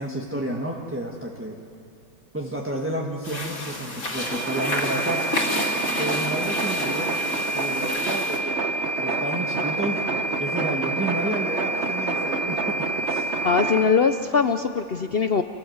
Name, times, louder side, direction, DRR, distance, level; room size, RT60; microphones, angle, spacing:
voice 1, 0.0-1.6 2.3-5.2 5.9-8.6 9.0-13.3, right 1 dB, 10° right, -1 dB, 1.4 m, -31 dB
sound 1, 3.2-8.4, left 1 dB, 45° left, 3.3 m, -31 dB
sound 2, 4.2-13.8, right 3 dB, 45° right, 1.3 m, -27 dB
voice 2, 13.4-15.4, left 5 dB, 60° left, 8 dB, 0.6 m, -21 dB
28.0 x 17.5 x 8.0 m, 2.6 s
omnidirectional pair, 1.8 m